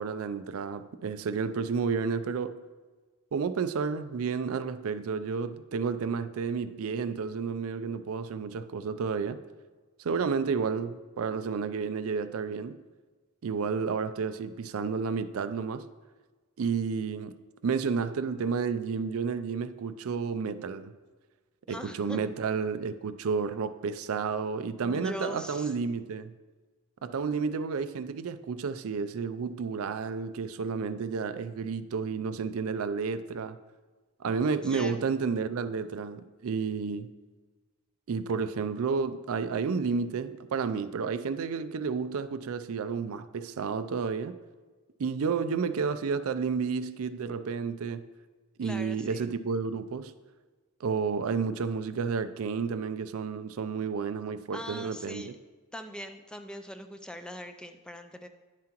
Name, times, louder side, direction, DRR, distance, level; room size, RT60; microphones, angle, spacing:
voice 1, 0.0-2.6 3.3-9.4 10.0-12.8 13.4-15.9 16.6-20.9 21.7-26.3 27.0-33.6 34.2-37.1 38.1-44.4 45.0-48.1 48.6-50.1 50.8-55.3, right 5 dB, 70° right, 0.4 m, -31 dB
voice 2, 21.7-22.2 24.8-25.7 34.6-35.1 48.6-49.3 54.5-55.3 55.7-58.3, equal, 5° left, 0.3 m, -41 dB
10.5 x 7.4 x 2.9 m
head